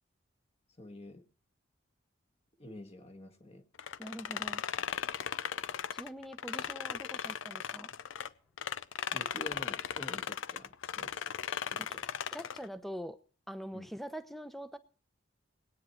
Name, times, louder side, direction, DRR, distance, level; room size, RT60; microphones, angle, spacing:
voice 1, 0.8-1.2 2.6-3.6 9.1-11.2 11.7-12.0 13.7-13.9, left 1 dB, 30° left, 4 dB, 1.5 m, -48 dB
sound 1, 3.8-8.3 8.6-12.7, left 8 dB, 90° left, 0.5 m, -37 dB
voice 2, 4.0-4.6 5.9-7.9 11.8-12.0 12.3-13.2 13.5-14.8, equal, ahead, 11 dB, 0.7 m, -44 dB
19.5 x 9.2 x 4.4 m, 0.41 s
head